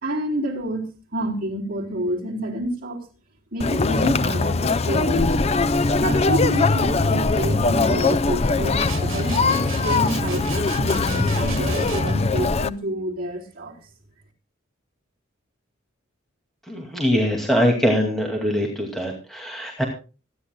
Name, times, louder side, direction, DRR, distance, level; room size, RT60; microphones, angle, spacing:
voice 1, 0.0-3.1 3.5-5.3 5.9-13.8, right 1 dB, 45° right, -2 dB, 3.9 m, -28 dB
Conversation, 3.6-12.7, left 3 dB, 30° left, 0.5 m, -21 dB
sound 1, 8.9-12.3, right 2 dB, 85° right, 1.7 m, -31 dB
voice 2, 16.7-19.8, equal, ahead, 0 dB, 2.2 m, -22 dB
25.5 x 10.5 x 2.2 m, 0.34 s
head